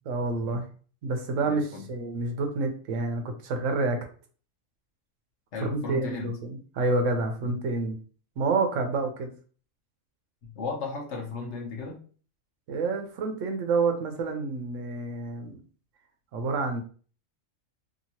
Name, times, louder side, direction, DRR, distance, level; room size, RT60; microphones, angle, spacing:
voice 1, 0.1-0.7 1.0-4.0 5.6-7.9 8.4-9.3 12.7-15.6 16.3-16.8, right 3 dB, 75° right, 4 dB, 1.0 m, -28 dB
voice 2, 1.3-1.9 5.5-6.3 7.4-7.5 10.4-12.0, left 4 dB, 65° left, 0 dB, 1.1 m, -35 dB
2.9 x 2.8 x 2.8 m, 0.41 s
omnidirectional pair, 1.3 m